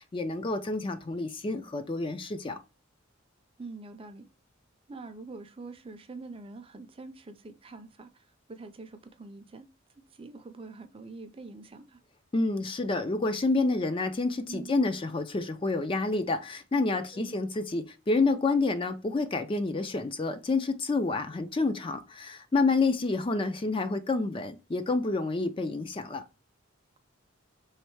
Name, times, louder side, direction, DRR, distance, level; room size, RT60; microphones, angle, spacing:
voice 1, 0.0-2.6 12.3-26.2, left 3 dB, 25° left, 0.4 m, -28 dB
voice 2, 3.6-4.2 4.9-9.7 10.1-12.0 14.5-14.8 17.1-17.4, right 3 dB, 25° right, 0.5 m, -45 dB
3.4 x 3.2 x 4.6 m
head